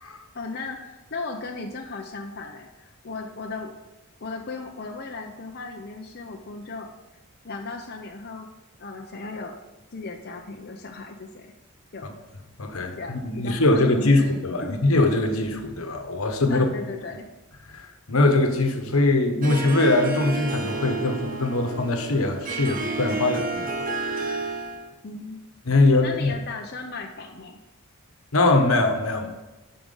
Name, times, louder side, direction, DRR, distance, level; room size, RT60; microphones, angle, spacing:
voice 1, 0.3-3.7 4.2-6.9 7.4-8.5 8.8-9.6 9.9-11.5 11.9-12.1 13.0-14.3 14.6-14.8 16.5-17.3 25.0-25.4 26.0-27.6, left 3 dB, 50° left, 1 dB, 0.7 m, -36 dB
voice 2, 12.6-16.7 17.7-24.5 25.7-26.3 28.3-29.3, left 2 dB, 80° left, 5 dB, 1.2 m, -22 dB
Harp, 19.4-24.9, right 3 dB, 40° right, 0.9 m, -31 dB
11.5 x 4.8 x 5.5 m, 1.1 s
head